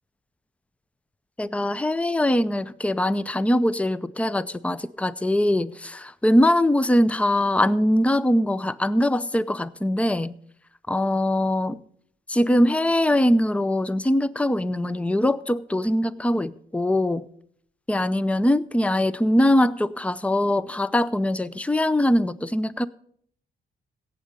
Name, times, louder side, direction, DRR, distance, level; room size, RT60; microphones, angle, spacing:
voice 1, 1.4-10.4 10.9-11.8 12.3-17.2 17.9-22.9, left 1 dB, 5° left, 0.6 m, -22 dB
16.5 x 7.6 x 5.3 m
cardioid pair, 70°, 21 cm